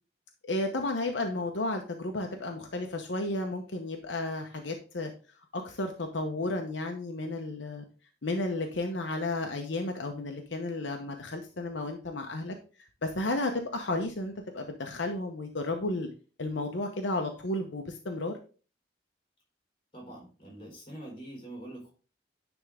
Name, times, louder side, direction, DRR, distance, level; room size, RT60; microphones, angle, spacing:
voice 1, 0.5-5.1 5.5-7.8 8.2-12.5 13.0-16.1 16.4-18.3, left 2 dB, 80° left, 3 dB, 0.9 m, -33 dB
voice 2, 19.9-21.9, right 1 dB, 30° left, -2 dB, 3.6 m, -44 dB
10.0 x 3.6 x 3.4 m, 0.36 s
head